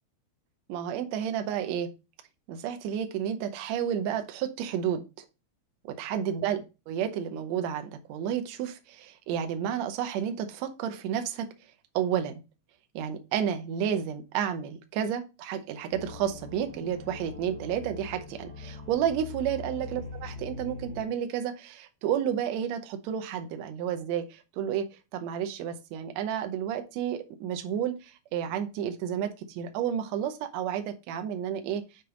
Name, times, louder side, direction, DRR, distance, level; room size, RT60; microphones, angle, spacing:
voice 1, 0.7-1.9 2.5-5.2 5.9-6.6 6.9-11.5 11.9-12.4 12.9-24.9 25.1-31.8, right 9 dB, 90° right, 7 dB, 1.5 m, -31 dB
sound 1, 15.9-21.0, left 4 dB, 20° right, 1.2 m, -42 dB
7.0 x 4.2 x 3.8 m, 0.28 s
omnidirectional pair, 4.3 m